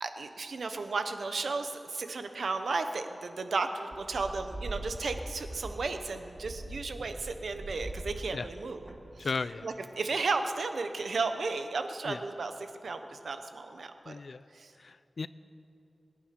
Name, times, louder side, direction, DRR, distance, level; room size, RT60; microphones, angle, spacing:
voice 1, 0.0-8.9 9.2-9.3 9.6-14.2 14.5-14.7, right 4 dB, 85° right, 8 dB, 0.9 m, -34 dB
sound 1, 3.9-9.4, right 2 dB, 35° right, 1.6 m, -42 dB
voice 2, 9.2-9.7 12.1-12.2 14.1-14.4 14.8-15.3, left 4 dB, 60° left, 15 dB, 0.4 m, -35 dB
21.0 x 9.9 x 6.0 m, 2.7 s
wide cardioid pair, 105°, 0 cm